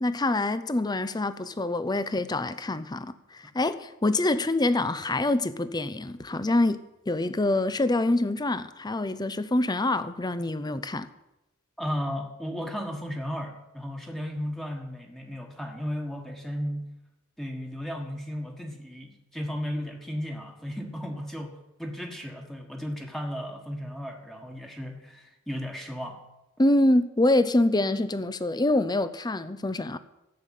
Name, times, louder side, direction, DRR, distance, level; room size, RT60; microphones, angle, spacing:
voice 1, 0.0-6.8 7.1-11.1 26.6-30.0, left 2 dB, 20° left, 0.7 m, -25 dB
voice 2, 11.8-16.9 17.4-26.2, equal, ahead, 1.6 m, -35 dB
13.5 x 7.1 x 9.3 m
head